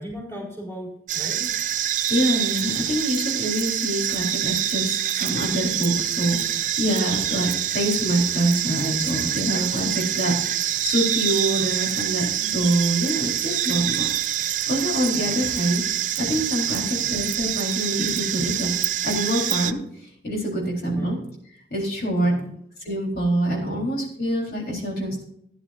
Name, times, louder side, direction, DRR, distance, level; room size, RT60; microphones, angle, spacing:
voice 1, 0.0-1.5 15.2-15.4 16.8-17.2 20.9-21.2 22.2-22.5 23.7-23.9, equal, 15° left, -3 dB, 4.3 m, -37 dB
sound 1, 1.1-19.7, right 11 dB, 45° right, 0.5 m, -26 dB
voice 2, 2.1-10.3 10.7-15.8 16.1-18.7 19.0-21.2 21.7-22.3 22.8-25.2, right 1 dB, 55° left, -2 dB, 3.9 m, -25 dB
17.5 x 10.5 x 2.6 m, 0.68 s
head